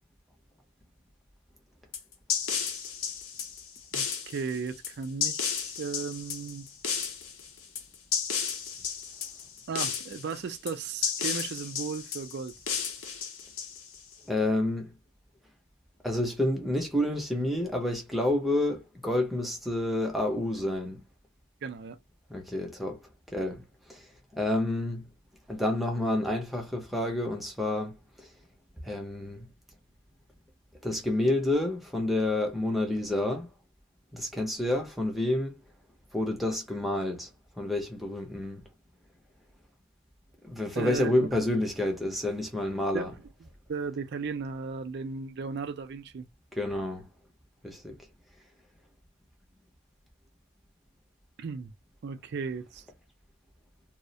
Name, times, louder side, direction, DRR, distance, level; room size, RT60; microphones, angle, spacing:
sound 1, 1.9-14.1, left 7 dB, 65° left, 0.7 m, -33 dB
voice 1, 3.9-6.6 9.7-12.5 21.6-22.0 40.8-41.1 42.9-43.1 43.4-46.3 51.4-51.7 52.0-52.8, right 5 dB, 50° right, 0.3 m, -35 dB
voice 2, 14.3-14.9 16.0-21.0 22.3-23.0 23.3-23.6 23.9-24.0 24.3-25.1 25.5-27.9 28.8-29.5 30.8-33.5 34.1-35.6 36.1-37.3 37.6-38.6 40.4-43.1 46.5-47.1 47.6-48.0, left 1 dB, ahead, 0.5 m, -29 dB
2.3 x 2.0 x 2.6 m
head